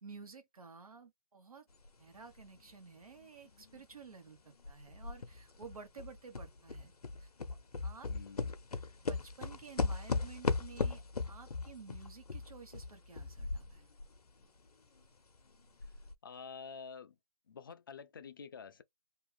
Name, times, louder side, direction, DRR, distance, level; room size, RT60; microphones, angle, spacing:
voice 1, 0.0-1.7 2.0-6.9 7.2-7.3 7.8-8.1 9.0-13.9, right 5 dB, 70° right, 1.3 m, -53 dB
sound 1, 1.9-2.0 2.4-4.3 4.6-14.2 14.4-14.5 15.1-15.2 15.6-16.2, left 4 dB, 90° left, 0.7 m, -38 dB
voice 2, 8.1-8.5 16.2-17.2 17.5-18.8, left 5 dB, 35° left, 0.4 m, -48 dB
2.8 x 2.4 x 3.4 m
figure-of-eight pair, 155°, 19 cm